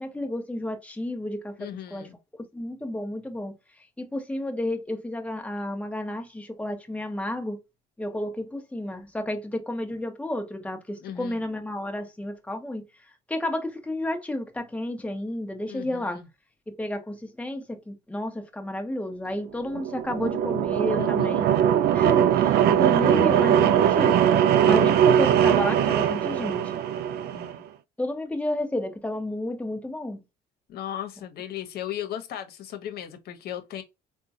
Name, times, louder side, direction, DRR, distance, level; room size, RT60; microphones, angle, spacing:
voice 1, 0.0-2.1 2.5-3.5 4.0-7.6 8.0-12.8 13.3-16.2 16.8-21.5 21.9-24.2 24.6-26.6 28.0-30.2, left 1 dB, 10° left, 0.9 m, -31 dB
voice 2, 1.6-2.2 11.0-11.4 15.7-16.3 21.0-21.3 27.3-27.6 30.7-33.8, left 11 dB, 65° left, 1.0 m, -36 dB
sound 1, 19.6-27.5, right 9 dB, 70° right, 0.4 m, -21 dB
3.6 x 2.3 x 2.8 m
cardioid pair, 110°, 17 cm